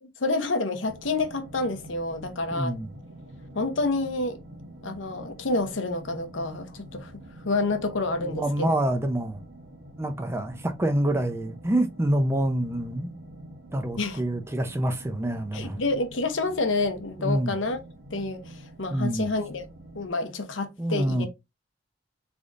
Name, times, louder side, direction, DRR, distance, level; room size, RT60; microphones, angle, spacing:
voice 1, 0.0-2.7 3.5-4.4 4.8-7.1 7.4-8.7 14.0-14.2 15.5-17.8 18.1-19.7 19.9-21.3, left 3 dB, 85° left, 0.8 m, -28 dB
sound 1, 0.8-20.1, right 1 dB, 85° right, 1.0 m, -46 dB
voice 2, 2.5-2.9 8.2-9.4 10.0-13.1 13.7-15.8 17.2-17.5 18.9-19.3 20.8-21.3, right 1 dB, 15° right, 0.5 m, -27 dB
3.9 x 3.4 x 2.4 m
head